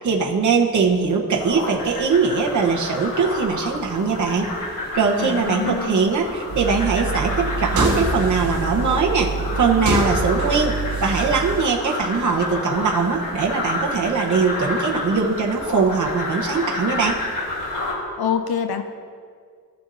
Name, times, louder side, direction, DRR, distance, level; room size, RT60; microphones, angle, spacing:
voice 1, 0.0-4.5 4.9-17.2, right 5 dB, 55° right, 0 dB, 0.9 m, -21 dB
sound 1, 1.3-17.9, left 2 dB, 60° left, 1.5 m, -30 dB
voice 2, 5.2-6.0 18.2-18.8, left 7 dB, 90° left, 8 dB, 0.7 m, -25 dB
sound 2, 6.5-11.6, right 3 dB, 75° right, 1.6 m, -25 dB
13.5 x 7.0 x 2.6 m, 2.1 s
wide cardioid pair, 150°, 36 cm